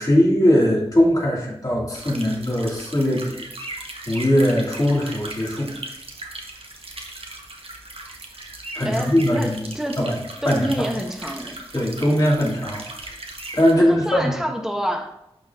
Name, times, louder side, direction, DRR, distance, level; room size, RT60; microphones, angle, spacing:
voice 1, 0.0-3.3 4.1-5.7 8.7-9.6 10.0-10.2 10.4-10.9 11.7-13.1 13.5-14.3, equal, 35° left, -5 dB, 2.9 m, -20 dB
sound 1, 1.9-13.7, right 2 dB, 60° right, 1.1 m, -38 dB
voice 2, 8.8-10.0 10.4-11.6 13.7-15.1, equal, 5° right, 2 dB, 1.3 m, -27 dB
12.0 x 4.2 x 2.9 m, 0.83 s
wide cardioid pair, 50°, 11 cm